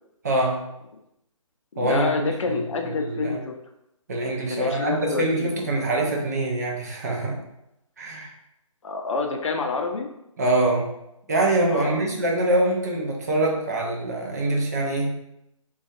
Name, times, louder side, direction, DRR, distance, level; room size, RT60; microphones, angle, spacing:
voice 1, 0.2-0.6 1.8-3.4 4.1-7.4 8.0-8.3 10.4-10.9 11.3-15.1, right 2 dB, 30° right, -1 dB, 0.4 m, -24 dB
voice 2, 1.7-3.6 4.5-5.6 8.8-10.1 11.7-12.0, left 4 dB, 65° left, 4 dB, 0.5 m, -28 dB
2.4 x 2.2 x 2.6 m, 0.83 s
figure-of-eight pair, 150°, 18 cm